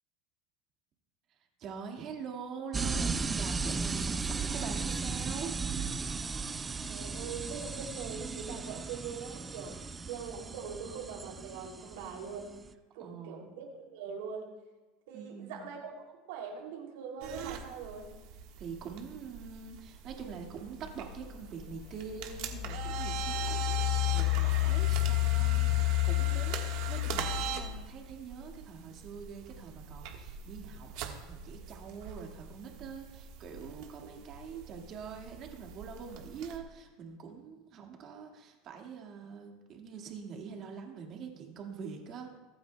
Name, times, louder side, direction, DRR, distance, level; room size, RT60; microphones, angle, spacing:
voice 1, 1.6-5.6 9.9-10.0 13.0-13.5 15.1-15.7 18.6-42.4, right 6 dB, 40° right, 2 dB, 1.8 m, -44 dB
sound 1, 2.7-12.7, right 4 dB, 15° right, 0.4 m, -36 dB
voice 2, 6.8-12.5 12.9-14.5 15.1-18.1, right 6 dB, 80° right, 0 dB, 2.8 m, -42 dB
sound 2, 17.2-36.6, right 8 dB, 60° right, 1.4 m, -42 dB
Engine, 21.2-21.3 21.9-27.9, left 19 dB, 55° left, 0.3 m, -30 dB
23.5 x 9.3 x 2.2 m, 1.2 s
supercardioid pair, 150°, 0 cm